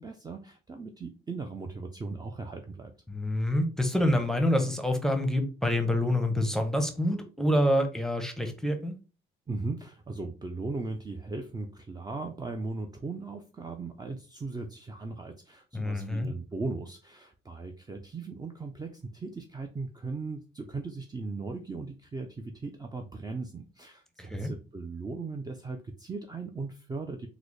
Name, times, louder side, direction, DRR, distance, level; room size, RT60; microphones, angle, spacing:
voice 1, 0.0-2.9 9.5-27.3, right 3 dB, 20° right, 0.4 m, -38 dB
voice 2, 3.1-9.0 15.7-16.3 24.2-24.5, left 1 dB, ahead, 0.7 m, -27 dB
3.8 x 2.1 x 3.2 m
cardioid pair, 90°, 20 cm